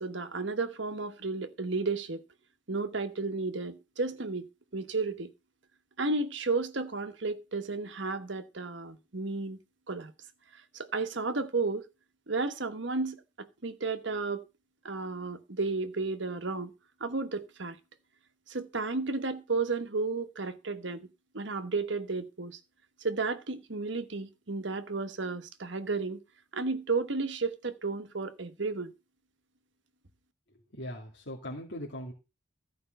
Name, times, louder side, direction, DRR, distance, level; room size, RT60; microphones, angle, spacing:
voice 1, 0.0-2.2 2.7-5.3 6.0-9.6 9.9-10.1 10.5-11.8 12.3-14.4 14.8-16.7 17.0-17.8 18.5-21.1 21.3-22.6 23.0-26.2 26.5-28.9, right 3 dB, 65° right, 1.2 m, -33 dB
voice 2, 30.7-32.1, left 1 dB, 60° left, 2.5 m, -40 dB
14.0 x 5.3 x 6.7 m
head